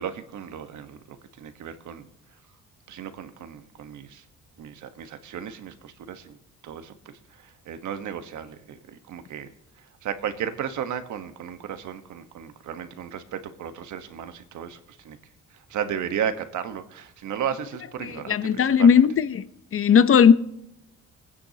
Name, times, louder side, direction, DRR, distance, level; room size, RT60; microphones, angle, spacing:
voice 1, 0.0-2.1 2.9-4.2 4.6-6.4 6.6-9.5 9.8-15.2 15.5-19.0, right 8 dB, 75° right, 1.3 m, -34 dB
voice 2, 18.0-19.4 19.7-20.3, left 7 dB, 45° left, 0.7 m, -17 dB
24.5 x 9.6 x 2.8 m
cardioid pair, 90°, 30 cm